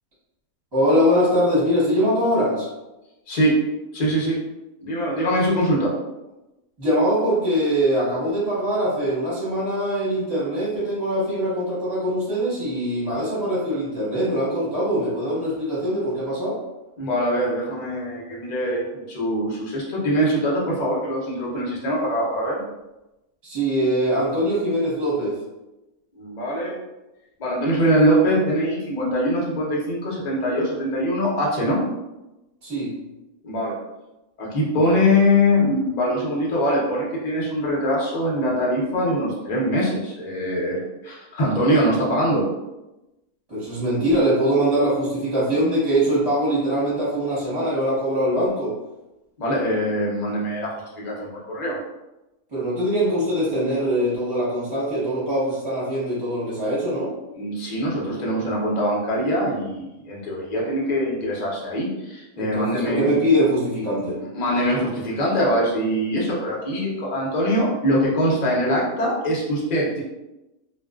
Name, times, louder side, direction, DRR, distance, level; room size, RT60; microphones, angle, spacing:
voice 1, 0.7-2.7 6.8-16.6 23.4-25.4 32.6-32.9 43.5-48.7 52.5-57.1 62.4-64.2, equal, 20° right, -9 dB, 0.9 m, -22 dB
voice 2, 3.3-3.6 3.9-4.4 4.8-5.9 17.0-22.6 26.2-26.8 27.4-31.8 33.4-33.8 34.4-42.4 49.4-51.8 57.3-63.1 64.3-70.0, equal, 50° left, -5 dB, 0.5 m, -23 dB
2.4 x 2.2 x 2.3 m, 0.98 s
omnidirectional pair, 1.6 m